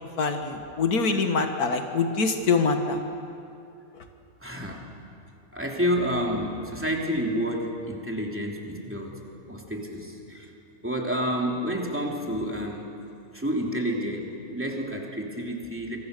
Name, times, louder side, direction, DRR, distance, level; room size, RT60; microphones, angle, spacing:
voice 1, 0.2-3.0, left 4 dB, 85° left, 5 dB, 2.0 m, -24 dB
voice 2, 4.4-4.8 5.5-9.2 9.5-10.5 10.8-12.9 13.3-16.0, equal, 10° right, -1 dB, 3.2 m, -29 dB
27.5 x 24.5 x 6.8 m, 2.6 s
omnidirectional pair, 1.5 m